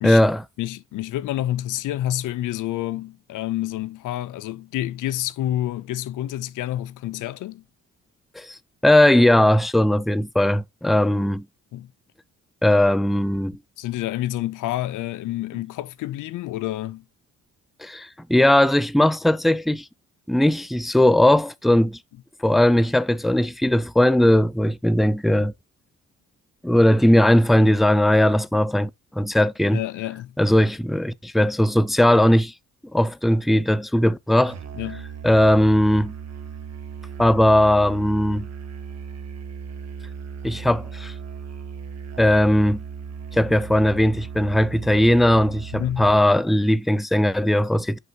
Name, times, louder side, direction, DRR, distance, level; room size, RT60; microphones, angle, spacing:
voice 1, 0.0-0.4 8.4-8.6 8.8-11.4 12.6-13.6 17.8-19.9 20.3-22.0 22.4-25.5 26.6-29.8 30.4-32.5 32.9-34.6 35.2-36.1 37.2-38.5 40.4-41.1 42.2-42.8 43.3-48.0, left 1 dB, ahead, 0.4 m, -18 dB
voice 2, 0.6-7.6 11.7-11.9 13.8-17.0 29.7-30.3 34.8-35.1 45.7-46.1, left 14 dB, 85° left, 0.6 m, -28 dB
Musical instrument, 34.5-46.3, right 6 dB, 55° right, 1.3 m, -37 dB
8.2 x 5.3 x 2.9 m
cardioid pair, 75°, 30 cm